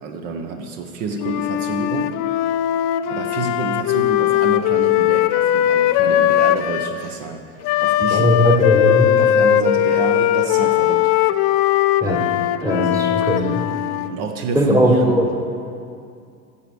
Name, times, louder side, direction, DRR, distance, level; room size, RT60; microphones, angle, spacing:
voice 1, 0.0-2.1 3.1-7.4 7.8-8.4 9.2-11.1 13.1-13.2 14.1-15.2, right 4 dB, 50° right, 5 dB, 1.0 m, -28 dB
Wind instrument woodwind instrument, 1.2-6.9 7.6-14.1, left 12 dB, 40° left, 0.4 m, -19 dB
voice 2, 8.1-9.1 12.0-12.3 12.6-13.6 14.5-15.4, equal, 5° right, 2 dB, 1.3 m, -18 dB
9.9 x 7.1 x 6.2 m, 2.4 s
hypercardioid pair, 85°, 46 cm